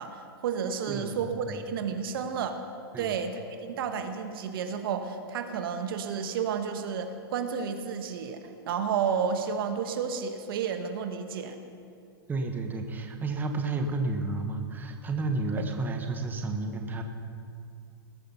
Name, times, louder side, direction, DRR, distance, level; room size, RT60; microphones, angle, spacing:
voice 1, 0.0-2.6 3.0-11.6, right 6 dB, 65° right, 7 dB, 1.2 m, -31 dB
voice 2, 0.9-1.2 1.5-1.6 2.9-3.1 12.3-17.0, right 3 dB, 15° right, 4 dB, 1.1 m, -31 dB
19.5 x 6.6 x 5.6 m, 2.4 s
hypercardioid pair, 125°, 13 cm